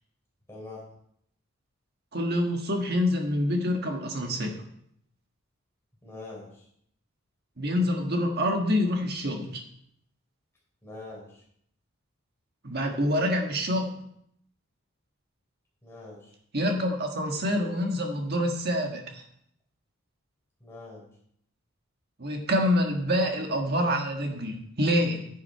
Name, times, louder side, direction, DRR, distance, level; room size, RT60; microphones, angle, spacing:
voice 1, 0.5-0.8 6.0-6.7 10.8-11.4 15.8-16.3 20.6-21.1, left 2 dB, 10° left, -4 dB, 4.0 m, -43 dB
voice 2, 2.1-4.6 7.6-9.6 12.6-13.9 16.5-19.2 22.2-25.3, equal, 50° right, 3 dB, 1.5 m, -26 dB
10.0 x 7.4 x 4.5 m, 0.71 s
head